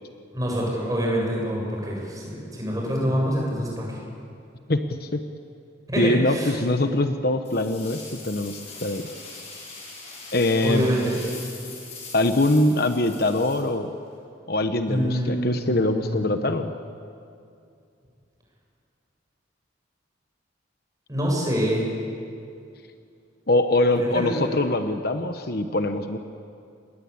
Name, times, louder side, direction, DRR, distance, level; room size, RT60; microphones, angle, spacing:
voice 1, 0.3-4.0 5.9-6.5 10.6-11.1 14.9-16.5 21.1-21.9 23.9-24.4, equal, 20° right, -2 dB, 7.7 m, -26 dB
voice 2, 4.7-5.2 6.0-9.0 10.3-10.9 12.1-13.9 14.5-16.7 23.5-26.2, left 2 dB, 50° left, 7 dB, 1.1 m, -23 dB
sound 1, 7.4-14.2, left 3 dB, 35° left, 6.9 m, -41 dB
28.5 x 21.5 x 8.7 m, 2.4 s
head